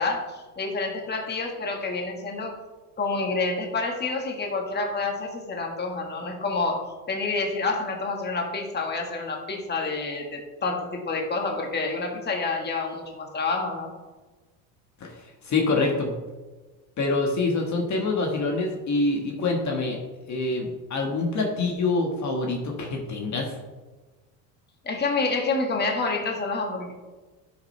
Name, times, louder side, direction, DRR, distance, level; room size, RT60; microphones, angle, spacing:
voice 1, 0.0-2.6 3.0-13.9 24.8-26.9, left 3 dB, 20° left, 1 dB, 1.7 m, -28 dB
voice 2, 15.4-16.1 17.0-20.0 20.3-23.5, left 3 dB, 40° left, 1 dB, 1.6 m, -25 dB
11.5 x 6.4 x 3.3 m, 1.3 s
supercardioid pair, 100°, 45 cm